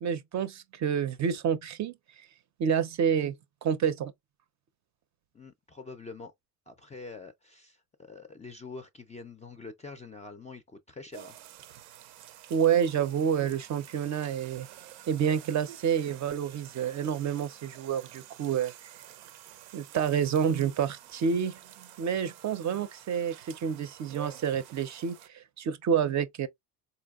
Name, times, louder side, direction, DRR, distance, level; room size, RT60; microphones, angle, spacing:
voice 1, 0.0-2.3 2.6-3.4 3.6-4.1 12.5-14.7 15.1-18.7 19.7-21.6 22.0-26.5, right 8 dB, 40° right, 0.5 m, -28 dB
voice 2, 5.3-6.3 6.7-11.4, left 3 dB, 15° left, 0.4 m, -45 dB
sound 1, 11.1-25.3, right 12 dB, 85° right, 0.7 m, -50 dB
3.9 x 2.8 x 2.3 m
supercardioid pair, 85°, 47 cm